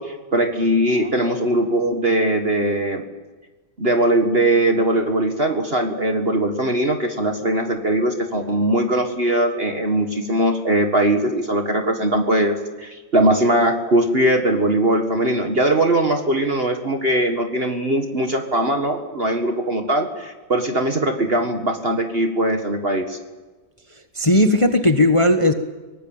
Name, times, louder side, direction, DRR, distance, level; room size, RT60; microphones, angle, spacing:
voice 1, 0.0-3.0 3.8-23.2, right 1 dB, 35° right, 5 dB, 1.9 m, -20 dB
voice 2, 24.1-25.5, left 1 dB, 20° left, 6 dB, 1.2 m, -16 dB
23.5 x 19.0 x 8.9 m, 1.3 s
omnidirectional pair, 1.8 m